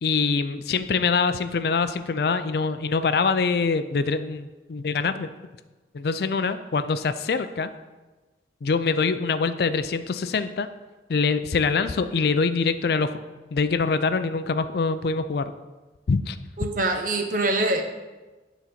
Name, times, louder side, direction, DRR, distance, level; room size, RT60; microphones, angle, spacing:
voice 1, 0.0-5.3 5.9-7.7 8.6-10.7 11.1-13.2 13.5-15.5 16.1-16.4, left 4 dB, 60° left, 11 dB, 0.4 m, -24 dB
voice 2, 16.6-17.8, right 2 dB, 50° right, 4 dB, 0.9 m, -24 dB
9.7 x 4.0 x 5.8 m, 1.2 s
head